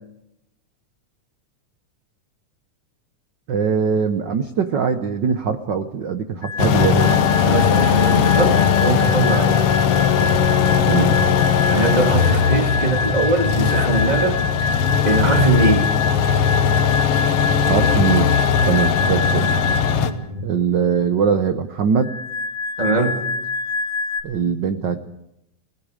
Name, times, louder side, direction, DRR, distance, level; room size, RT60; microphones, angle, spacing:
voice 1, 3.5-7.1 10.9-11.2 17.7-18.4 18.6-19.5 20.4-22.1 24.2-25.0, right 6 dB, 75° right, 8 dB, 1.0 m, -21 dB
sound 1, 6.4-20.1 22.0-24.2, left 3 dB, 30° left, 3.6 m, -26 dB
sound 2, 6.6-20.1, left 7 dB, 60° left, 1.9 m, -18 dB
voice 2, 7.4-9.6 11.7-15.9 19.5-20.4 22.8-23.2, right 3 dB, 15° right, 2 dB, 2.3 m, -22 dB
30.0 x 18.5 x 5.1 m, 0.83 s
omnidirectional pair, 3.5 m